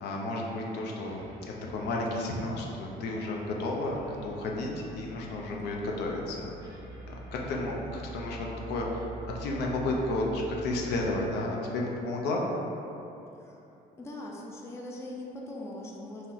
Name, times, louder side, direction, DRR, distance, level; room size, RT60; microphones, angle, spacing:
voice 1, 0.0-1.2 1.7-6.8 7.1-9.1 9.3-12.4, left 2 dB, 75° left, -1 dB, 0.5 m, -32 dB
sound 1, 1.1-11.4, right 1 dB, 20° right, 0.6 m, -46 dB
voice 2, 5.4-5.8 13.4-13.6 14.0-16.3, left 1 dB, 15° left, -2 dB, 0.3 m, -41 dB
2.8 x 2.1 x 3.7 m, 2.9 s
cardioid pair, 110°, 17 cm